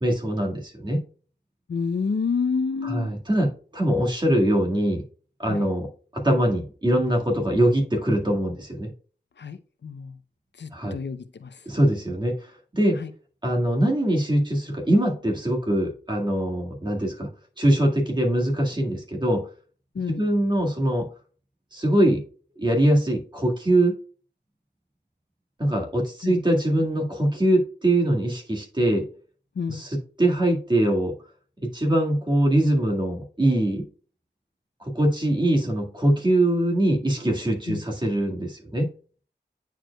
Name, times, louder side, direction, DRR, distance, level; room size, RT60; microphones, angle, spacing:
voice 1, 0.0-1.0 2.8-5.0 5.4-8.9 10.7-11.0 11.6-12.4 12.7-13.0 13.4-17.3 17.6-19.5 20.1-21.1 21.7-22.2 22.6-23.9 25.6-29.1 29.7-31.2 31.6-33.9 34.8-38.9, right 1 dB, 25° right, 0 dB, 1.8 m, -23 dB
voice 2, 1.7-3.2 5.5-5.7 9.4-10.2 10.6-11.6 13.0-13.1 19.9-20.3 26.2-26.4 29.6-29.8 37.7-37.8, left 5 dB, 80° left, 10 dB, 0.6 m, -29 dB
9.1 x 4.6 x 2.3 m, 0.40 s
wide cardioid pair, 65°, 18 cm